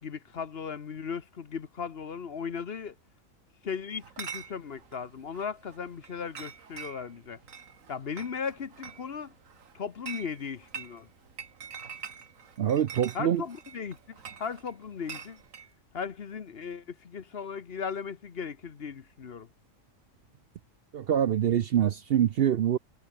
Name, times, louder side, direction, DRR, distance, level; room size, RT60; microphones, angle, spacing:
voice 1, 0.0-2.9 3.6-7.4 7.9-9.3 9.7-11.1 13.1-15.4 15.9-19.5, left 6 dB, 50° left, 1.2 m, -37 dB
Chatter / Chink clink, 4.0-15.7, right 6 dB, 85° right, 1.9 m, -45 dB
voice 2, 12.6-13.4 20.9-22.8, right 10 dB, 60° right, 0.7 m, -25 dB
omnidirectional pair, 1.4 m